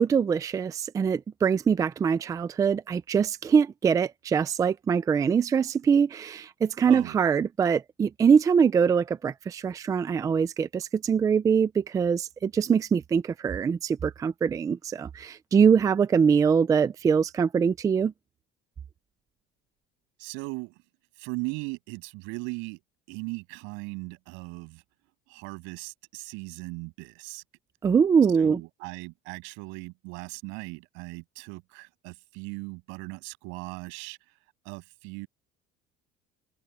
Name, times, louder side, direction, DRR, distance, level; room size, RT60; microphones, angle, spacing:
voice 1, 0.0-18.1 27.8-28.6, right 6 dB, 15° right, 0.4 m, -23 dB
voice 2, 20.2-20.7 21.2-22.8 23.1-24.8 25.3-27.4 28.4-34.2 34.6-35.3, right 29 dB, 80° right, 7.6 m, -38 dB
cardioid pair, 170°, 20 cm